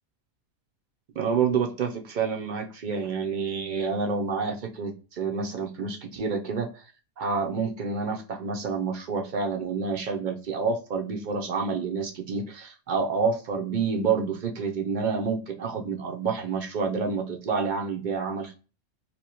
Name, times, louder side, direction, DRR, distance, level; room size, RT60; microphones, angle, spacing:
voice 1, 1.2-6.8 7.2-18.5, right 5 dB, 60° right, 2 dB, 0.5 m, -28 dB
2.8 x 2.6 x 4.2 m, 0.34 s
omnidirectional pair, 1.4 m